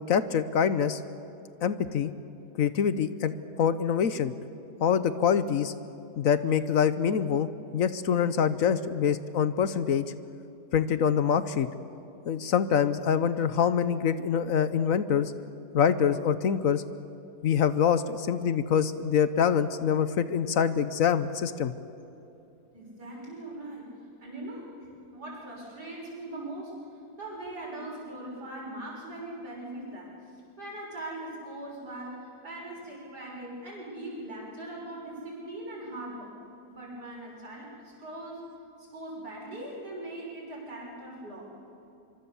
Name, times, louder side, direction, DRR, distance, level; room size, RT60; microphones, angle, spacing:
voice 1, 0.1-1.0 1.6-2.1 2.6-4.3 4.8-5.7 6.2-10.1 10.7-11.7 12.3-15.3 15.7-16.8 17.4-21.7, left 7 dB, 60° left, 13 dB, 1.1 m, -25 dB
voice 2, 22.7-26.8 27.2-36.3 36.7-38.5 38.8-41.5, right 1 dB, 85° right, -3 dB, 6.7 m, -41 dB
25.0 x 24.0 x 7.0 m, 2.8 s
omnidirectional pair, 1.7 m